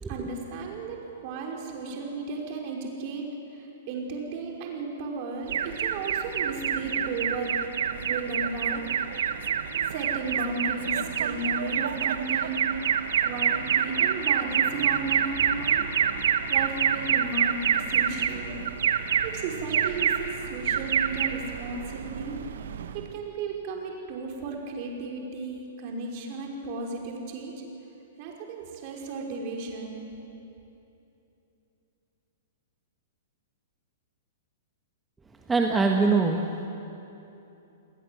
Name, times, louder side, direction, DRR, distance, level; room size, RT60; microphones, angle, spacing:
voice 1, 0.1-7.5 7.9-8.8 9.9-12.7 13.2-15.9 16.5-18.7 19.2-22.4 22.9-27.5 28.2-30.1, right 3 dB, 40° right, 0 dB, 5.4 m, -34 dB
Alarm, 5.5-23.1, right 8 dB, 60° right, 1.3 m, -27 dB
voice 2, 35.5-36.7, right 4 dB, 10° right, 2 dB, 1.7 m, -23 dB
29.0 x 20.5 x 7.9 m, 2.9 s
figure-of-eight pair, 110°, 0 cm